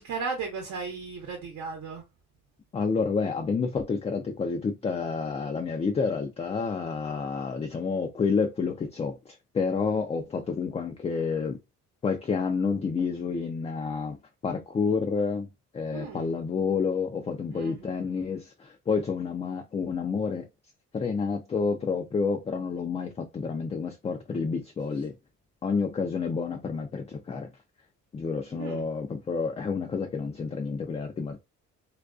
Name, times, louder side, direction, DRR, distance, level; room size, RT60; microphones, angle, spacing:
voice 1, 0.0-2.0 15.9-16.3 17.5-18.0 28.5-28.8, right 5 dB, 70° right, 0.8 m, -36 dB
voice 2, 2.7-11.6 12.0-15.5 15.7-20.5 20.9-25.1 25.6-27.5 28.1-31.4, left 5 dB, 20° left, 0.3 m, -29 dB
2.3 x 2.2 x 2.4 m
cardioid pair, 90°, 30 cm